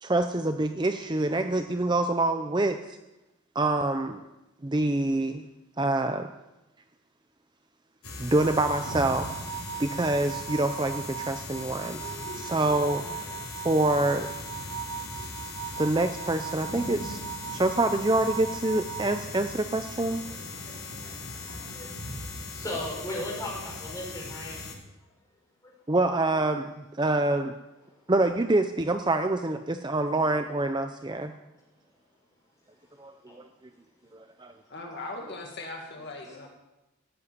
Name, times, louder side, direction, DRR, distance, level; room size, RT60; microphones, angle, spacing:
voice 1, 0.0-3.0 3.5-4.2 4.6-5.4 5.8-6.3 8.2-9.3 9.8-12.0 12.3-13.2 13.6-14.3 15.8-17.2 17.5-20.2 25.9-26.7 27.0-27.5 28.1-31.3 33.0-33.4 34.1-34.5, right 2 dB, 20° right, 7 dB, 0.6 m, -26 dB
sound 1, 8.0-24.7, left 3 dB, 90° left, 3.6 m, -39 dB
sound 2, 8.4-19.2, right 10 dB, 80° right, 1.7 m, -40 dB
voice 2, 20.3-24.6 31.1-31.2 33.3-33.4, left 1 dB, 15° left, -3 dB, 5.1 m, -38 dB
voice 3, 34.7-36.5, left 2 dB, 50° left, 1 dB, 2.1 m, -39 dB
15.0 x 8.5 x 9.6 m, 1.0 s
head